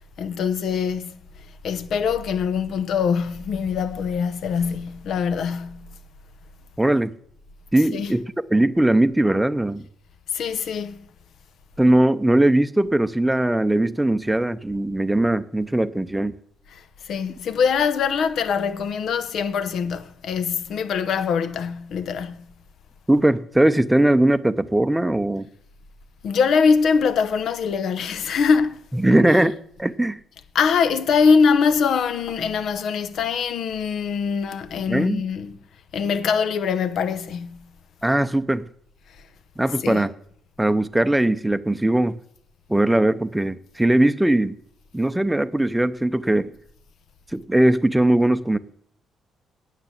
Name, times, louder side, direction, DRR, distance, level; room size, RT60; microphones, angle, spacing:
voice 1, 0.2-1.1 1.6-5.9 7.9-8.1 10.3-11.0 16.7-22.5 26.2-28.9 29.3-29.4 30.5-35.6 35.9-37.7 39.8-40.0, left 6 dB, 70° left, 0.8 m, -23 dB
voice 2, 6.8-7.1 7.7-8.2 8.5-9.9 11.8-16.3 23.1-25.5 28.9-30.2 34.9-35.2 38.0-38.6 39.6-40.1 40.6-42.2 42.7-44.6 44.9-46.5 47.3-48.6, right 1 dB, 5° right, 0.6 m, -20 dB
9.5 x 6.6 x 7.4 m
cardioid pair, 90°, 0 cm